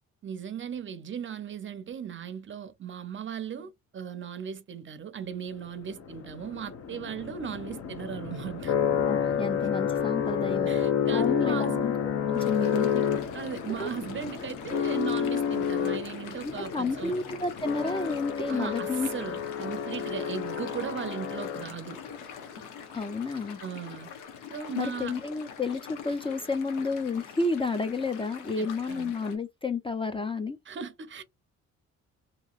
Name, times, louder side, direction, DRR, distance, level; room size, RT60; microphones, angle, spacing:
voice 1, 0.2-8.7 9.6-9.7 10.7-11.9 13.3-17.2 18.5-22.0 23.6-24.1 24.5-25.2 28.6-29.1 30.7-31.2, right 8 dB, 40° right, 0.5 m, -37 dB
sound 1, 5.9-22.1, left 8 dB, 50° left, 0.7 m, -30 dB
voice 2, 9.1-10.7 11.1-11.9 12.3-13.1 13.8-13.9 16.4-19.1 22.9-23.6 24.8-30.6, left 3 dB, 20° left, 0.4 m, -31 dB
sound 2, 12.3-29.4, left 7 dB, 85° left, 0.9 m, -45 dB
2.9 x 2.7 x 2.4 m
cardioid pair, 90°, 30 cm